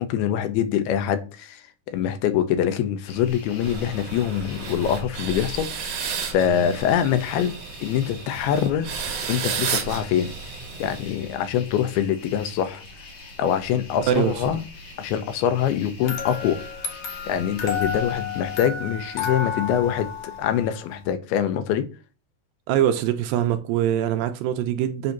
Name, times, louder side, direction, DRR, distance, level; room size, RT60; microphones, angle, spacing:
voice 1, 0.0-7.5 7.8-8.9 9.3-10.3 10.8-12.8 13.4-14.6 15.0-16.6 17.3-21.9, left 9 dB, 85° left, 2.7 m, -24 dB
sound 1, 3.1-18.6, left 2 dB, 50° left, 1.4 m, -43 dB
sound 2, 3.6-11.6, right 6 dB, 65° right, 1.8 m, -33 dB
voice 2, 14.1-14.4 22.7-25.1, right 10 dB, 80° right, 2.2 m, -23 dB
sound 3, 16.0-21.0, left 6 dB, 70° left, 1.5 m, -31 dB
7.9 x 2.7 x 5.8 m
omnidirectional pair, 4.4 m